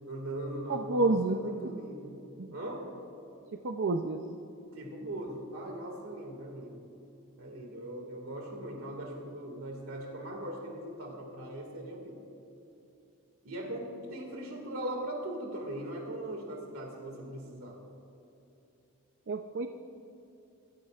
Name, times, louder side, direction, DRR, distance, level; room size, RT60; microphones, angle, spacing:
voice 1, 0.0-2.9 4.7-6.8 7.4-12.2 13.4-17.8, right 1 dB, 70° right, 1 dB, 2.1 m, -40 dB
voice 2, 0.7-1.4 2.4-2.5 3.5-4.2 19.3-19.7, right 3 dB, 55° right, 7 dB, 0.6 m, -29 dB
24.0 x 14.5 x 2.5 m, 2.8 s
head